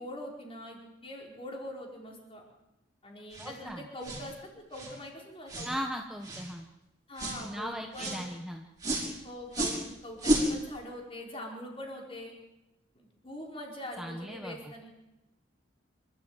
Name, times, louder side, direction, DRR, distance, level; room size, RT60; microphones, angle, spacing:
voice 1, 0.0-2.4 3.0-5.7 7.1-8.3 9.2-12.3 13.2-14.9, left 1 dB, 30° left, 0 dB, 4.9 m, -43 dB
sound 1, 3.3-3.5 4.0-4.3 4.7-5.0 5.5-5.7 6.2-6.5 7.2-7.4 7.9-8.2 8.8-9.1 9.5-9.8 10.2-10.5, right 1 dB, 20° right, 5.3 m, -31 dB
voice 2, 3.4-3.9 5.6-6.7 7.4-8.7 14.0-14.7, equal, ahead, 2 dB, 1.1 m, -38 dB
27.0 x 13.0 x 9.0 m, 1.0 s
head